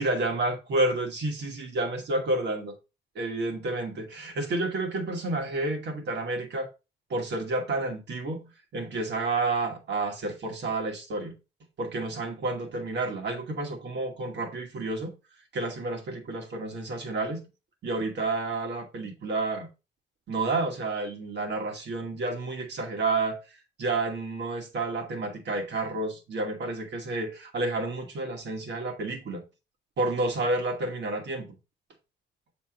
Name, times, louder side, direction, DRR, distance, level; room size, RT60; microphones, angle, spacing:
voice 1, 0.0-2.7 3.2-6.7 7.1-11.3 11.8-15.1 15.5-17.4 17.8-19.7 20.3-23.4 23.8-29.4 30.0-31.5, right 2 dB, 60° right, 2.2 m, -30 dB
7.5 x 4.2 x 3.9 m
cardioid pair, 90°, 20 cm